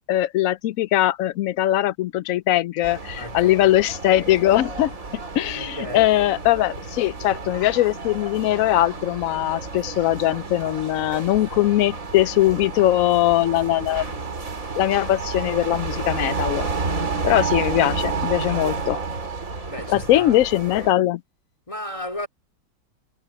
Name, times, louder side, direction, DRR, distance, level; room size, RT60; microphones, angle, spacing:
voice 1, 0.1-4.9 5.4-14.0 14.7-16.7 17.2-19.0 19.9-21.2, left 14 dB, 85° left, 0.7 m, -21 dB
sound 1, 2.8-20.9, right 4 dB, 45° right, 3.9 m, -31 dB
voice 2, 3.2-3.7 5.5-6.1 19.7-20.4 21.7-22.3, left 1 dB, 15° left, 2.9 m, -34 dB
omnidirectional pair, 2.0 m